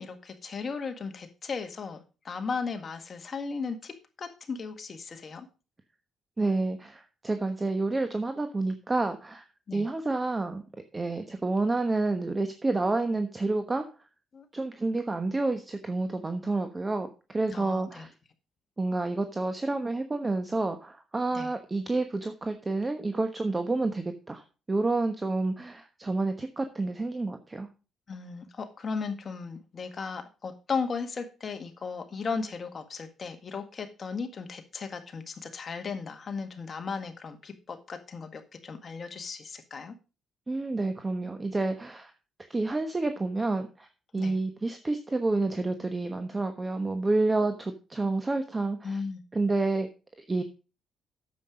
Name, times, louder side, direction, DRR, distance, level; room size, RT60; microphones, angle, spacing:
voice 1, 0.0-2.0 2.2-5.5 9.7-9.9 14.3-14.5 17.5-18.1 21.3-21.5 28.1-39.9 44.2-44.4 48.8-49.2, left 5 dB, 40° left, 7 dB, 1.8 m, -36 dB
voice 2, 6.4-9.5 9.7-10.6 10.9-13.9 14.5-18.1 18.8-24.4 24.7-27.7 40.5-42.1 42.5-43.9 44.1-49.0 49.3-49.9 50.3-50.4, right 2 dB, 20° right, 7 dB, 1.1 m, -29 dB
9.4 x 7.6 x 5.0 m, 0.33 s
cardioid pair, 90°, 0 cm